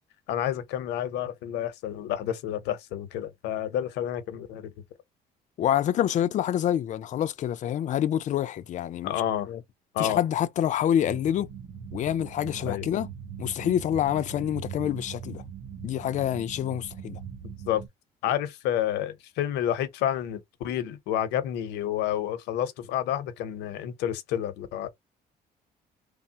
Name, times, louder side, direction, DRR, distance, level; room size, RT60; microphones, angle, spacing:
voice 1, 0.3-4.7 9.0-9.5 9.9-10.2 12.7-12.9 17.7-17.8 18.2-24.9, left 11 dB, 85° left, 0.7 m, -29 dB
voice 2, 5.6-9.1 9.5-9.6 10.0-11.5 11.9-13.1 13.4-15.4 15.8-17.2, left 10 dB, 45° left, 0.4 m, -27 dB
sound 1, 11.0-17.9, right 8 dB, 55° right, 1.0 m, -41 dB
3.2 x 2.0 x 2.8 m
cardioid pair, 110°, 17 cm